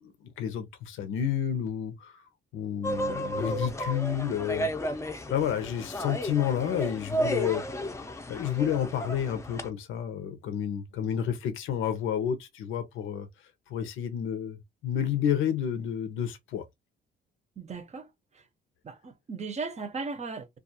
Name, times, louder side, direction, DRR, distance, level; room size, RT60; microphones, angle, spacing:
voice 1, 0.0-2.2 2.5-4.7 5.3-7.6 8.3-13.3 13.7-16.6, left 9 dB, 85° left, 0.7 m, -30 dB
sound 1, 2.8-9.7, equal, 15° left, 0.5 m, -33 dB
voice 2, 17.6-18.1 18.8-20.5, right 4 dB, 35° right, 0.6 m, -36 dB
2.4 x 2.3 x 2.8 m
cardioid pair, 90°, 20 cm